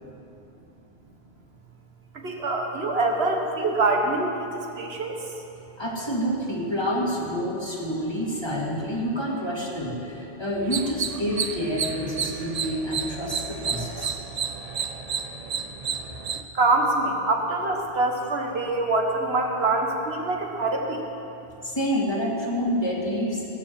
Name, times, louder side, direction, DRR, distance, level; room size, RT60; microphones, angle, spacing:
voice 1, 2.1-5.2 16.5-21.0, right 2 dB, 80° right, 2 dB, 1.6 m, -25 dB
voice 2, 5.8-14.1 21.6-23.5, equal, 25° left, -3 dB, 2.1 m, -28 dB
sound 1, 10.6-16.4, right 6 dB, 45° right, 0.6 m, -31 dB
18.0 x 7.1 x 7.7 m, 2.9 s
omnidirectional pair, 1.0 m